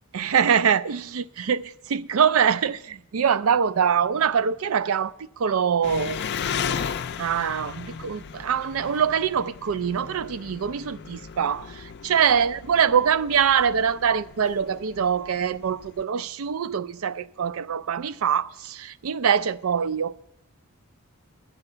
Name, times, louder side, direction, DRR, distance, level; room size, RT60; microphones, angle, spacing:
voice 1, 0.1-6.2 7.2-20.1, right 7 dB, 70° right, 0.4 m, -24 dB
Engine, 5.8-16.0, left 7 dB, 50° left, 0.4 m, -35 dB
11.0 x 9.8 x 6.7 m
head